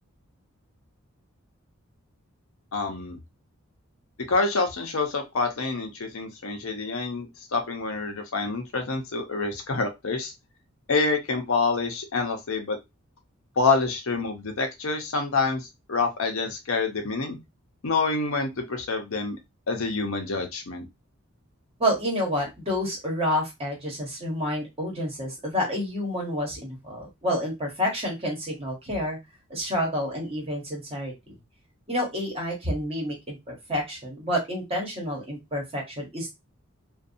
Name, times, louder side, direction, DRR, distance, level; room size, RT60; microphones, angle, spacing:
voice 1, 2.7-3.2 4.3-10.3 10.9-12.8 13.6-17.4 17.8-19.4 19.7-20.9, left 3 dB, 80° left, 4 dB, 0.7 m, -27 dB
voice 2, 21.8-29.2 29.5-31.4 31.9-36.3, equal, 30° right, -1 dB, 1.0 m, -29 dB
2.6 x 2.3 x 2.5 m, 0.21 s
head